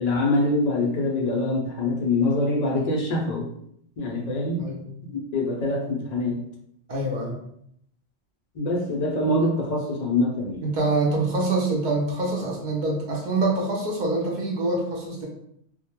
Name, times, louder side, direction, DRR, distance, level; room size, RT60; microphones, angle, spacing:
voice 1, 0.0-3.5 4.0-4.7 5.3-6.4 8.6-10.6, left 2 dB, 60° left, 0 dB, 0.4 m, -24 dB
voice 2, 6.9-7.4 10.6-15.3, right 2 dB, 55° right, -2 dB, 0.6 m, -25 dB
2.2 x 2.1 x 2.9 m, 0.71 s
omnidirectional pair, 1.1 m